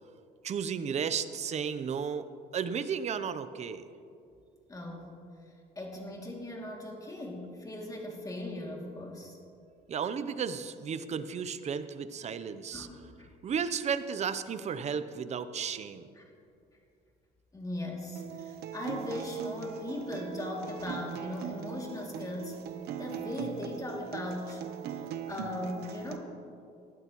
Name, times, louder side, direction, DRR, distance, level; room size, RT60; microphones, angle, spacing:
voice 1, 0.4-3.9 9.9-12.9 13.4-16.1, right 6 dB, 40° right, 12 dB, 0.7 m, -34 dB
voice 2, 4.7-5.1 5.5-9.4 12.7-13.3 16.2-16.3 17.5-22.6 23.0-24.6 25.3-26.3, left 1 dB, 20° left, -1 dB, 2.6 m, -38 dB
Acoustic guitar, 18.2-26.2, right 8 dB, 75° right, 0.9 m, -40 dB
19.0 x 12.5 x 3.1 m, 2.5 s
cardioid pair, 110°, 17 cm